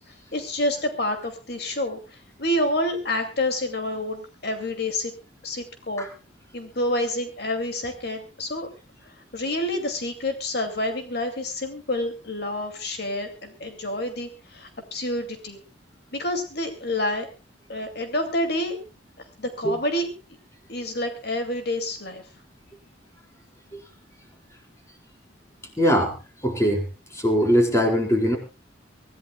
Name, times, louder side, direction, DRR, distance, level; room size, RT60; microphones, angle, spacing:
voice 1, 0.1-5.1 5.4-6.1 6.5-8.7 9.3-15.6 16.1-17.3 17.7-18.8 19.4-20.1 20.7-22.2, left 1 dB, 60° left, 6 dB, 2.5 m, -28 dB
voice 2, 25.8-26.1 26.4-26.8 27.1-28.4, equal, 15° left, 2 dB, 4.3 m, -20 dB
25.0 x 15.5 x 2.3 m, 0.31 s
head